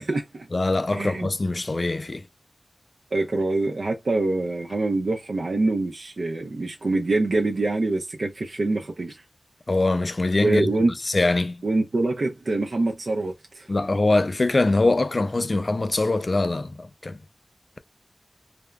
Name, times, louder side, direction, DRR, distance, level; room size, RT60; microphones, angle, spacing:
voice 1, 0.0-0.5 0.9-1.3 3.1-9.2 10.4-10.9 11.6-13.7, right 2 dB, 75° right, 0.5 m, -25 dB
voice 2, 0.5-2.2 9.7-10.7 11.0-11.6 13.7-17.2, left 2 dB, 55° left, 0.3 m, -23 dB
3.4 x 2.0 x 2.3 m
wide cardioid pair, 50°, 0 cm